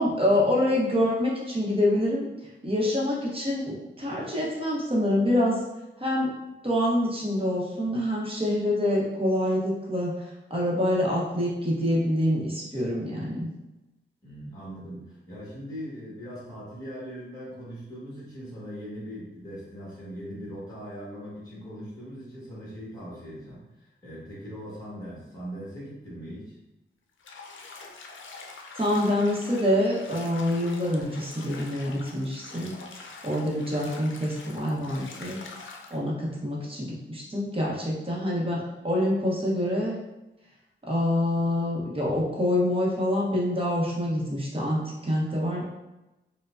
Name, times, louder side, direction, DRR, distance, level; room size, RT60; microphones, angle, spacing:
voice 1, 0.0-2.3 2.6-5.6 6.0-6.3 6.6-13.5 28.8-35.4 35.9-40.0 40.9-45.6, left 1 dB, 25° right, -4 dB, 0.9 m, -26 dB
voice 2, 14.2-26.6, equal, 15° left, -7 dB, 1.4 m, -40 dB
Bathtub (filling or washing), 27.2-36.0, left 4 dB, 75° left, 0.5 m, -44 dB
4.5 x 2.2 x 2.5 m, 1.0 s
wide cardioid pair, 110°, 20 cm